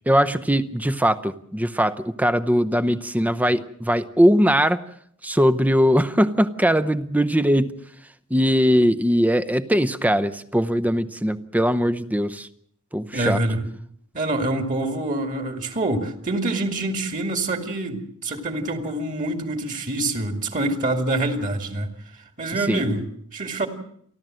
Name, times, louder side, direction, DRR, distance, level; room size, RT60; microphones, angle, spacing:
voice 1, 0.1-4.8 5.2-7.8 8.3-12.5 12.9-13.4 22.7-22.8, equal, 5° right, 0.8 m, -20 dB
voice 2, 13.1-13.6 14.1-21.9 22.4-23.0 23.3-23.7, right 2 dB, 40° right, 2.3 m, -26 dB
29.5 x 12.5 x 7.6 m
head